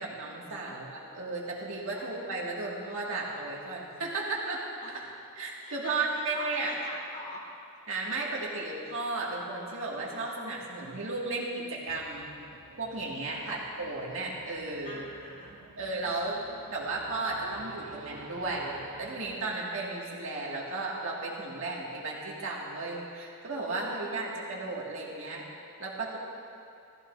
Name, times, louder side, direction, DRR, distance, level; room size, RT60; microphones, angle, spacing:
voice 1, 0.0-4.6 5.4-6.7 7.9-12.3 12.8-15.1 15.8-16.4 16.7-25.4 25.8-26.2, right 3 dB, 60° right, -4 dB, 2.1 m, -34 dB
voice 2, 1.9-2.4 4.8-5.1 5.6-7.4 13.3-13.7 14.8-15.6 23.8-24.4, left 1 dB, 35° left, -3 dB, 2.4 m, -46 dB
sound 1, 11.9-19.6, right 4 dB, 90° right, 0.7 m, -50 dB
15.5 x 14.5 x 2.7 m, 2.6 s
head